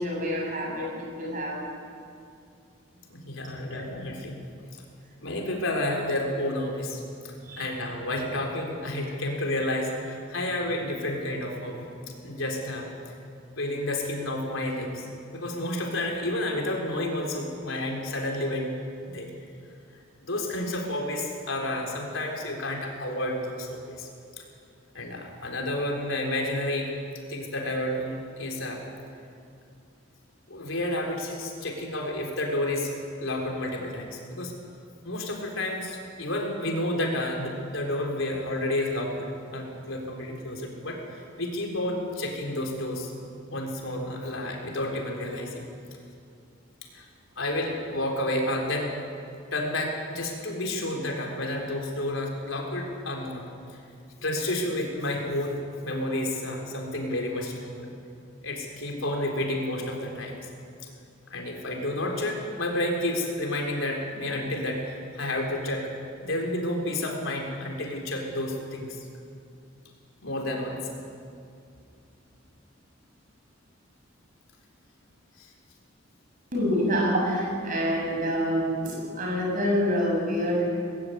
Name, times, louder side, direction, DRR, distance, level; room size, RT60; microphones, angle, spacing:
voice 1, 0.0-1.7 3.7-4.0 7.4-7.7 76.5-80.6, equal, 40° right, -2 dB, 7.0 m, -27 dB
voice 2, 3.1-4.3 5.2-11.9 12.2-12.9 13.6-15.1 15.3-18.7 19.1-19.3 20.2-24.1 24.4-24.5 24.9-26.9 27.3-28.8 30.5-34.5 35.0-43.1 43.5-45.6 46.9-47.0 47.4-48.9 49.5-53.4 53.7-53.8 54.2-57.9 58.4-60.4 61.3-66.0 66.2-69.1 70.2-70.8 75.4-75.5, left 1 dB, 80° left, 0 dB, 3.9 m, -30 dB
20.0 x 15.5 x 9.4 m, 2.5 s
head